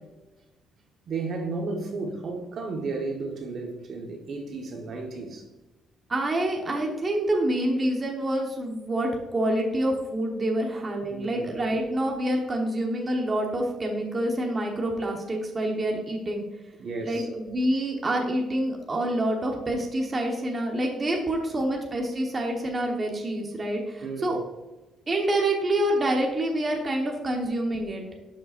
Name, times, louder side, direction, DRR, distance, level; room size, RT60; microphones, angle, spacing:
voice 1, 1.1-5.4 11.0-11.6 16.8-17.3 24.0-24.4, right 3 dB, 45° right, 1.2 m, -33 dB
voice 2, 6.1-16.4 17.0-24.4 25.1-28.0, right 1 dB, 25° right, 1.1 m, -27 dB
11.5 x 5.6 x 2.5 m
cardioid pair, 145°, 0 cm